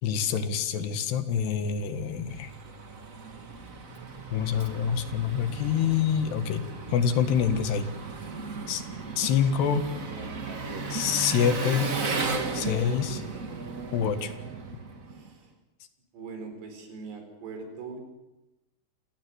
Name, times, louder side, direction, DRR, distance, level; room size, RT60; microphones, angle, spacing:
voice 1, 0.0-2.5 4.3-6.6 6.9-7.9 8.7-8.8 9.2-9.8 10.9-11.9 12.5-13.2 13.9-14.3, left 8 dB, 75° left, 10 dB, 3.8 m, -26 dB
Engine, 1.8-15.3, right 3 dB, 40° right, 1.2 m, -36 dB
voice 2, 10.1-11.2 15.1-15.5 16.1-18.0, right 4 dB, 80° right, 6 dB, 6.6 m, -42 dB
27.0 x 17.0 x 9.8 m, 0.97 s
omnidirectional pair, 4.8 m